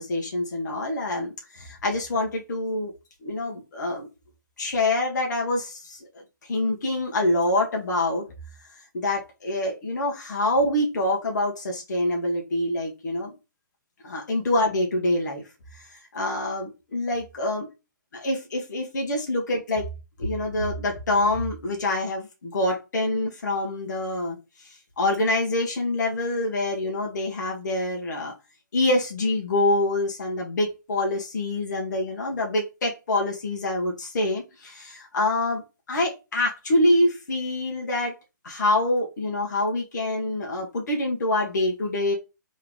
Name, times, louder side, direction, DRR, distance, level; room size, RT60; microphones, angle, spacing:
voice 1, 0.0-2.9 3.2-4.1 4.6-6.0 6.5-8.2 8.9-13.4 14.0-15.4 15.9-17.7 18.1-19.9 20.2-24.4 24.6-28.3 28.7-38.1 38.4-42.1, left 1 dB, 65° left, 0 dB, 1.5 m, -26 dB
3.6 x 3.2 x 3.6 m, 0.26 s
hypercardioid pair, 145°, 11 cm